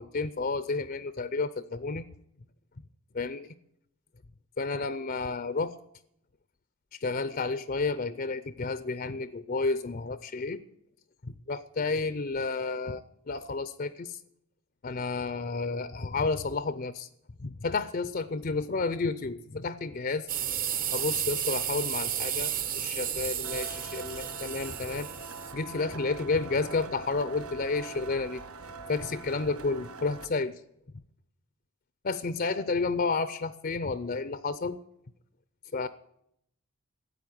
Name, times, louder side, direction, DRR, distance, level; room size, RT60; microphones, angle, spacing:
voice 1, 0.0-2.0 3.1-3.5 4.6-5.7 6.9-10.6 11.2-14.2 14.8-17.1 17.4-20.3 20.9-25.1 25.5-28.4 28.9-30.6 32.0-34.8 35.7-35.9, left 3 dB, 40° left, 14 dB, 0.6 m, -31 dB
sound 1, 20.3-25.5, right 10 dB, 40° right, 1.0 m, -32 dB
sound 2, 23.4-30.3, right 3 dB, 80° right, 1.3 m, -43 dB
13.5 x 9.2 x 9.4 m, 0.75 s
head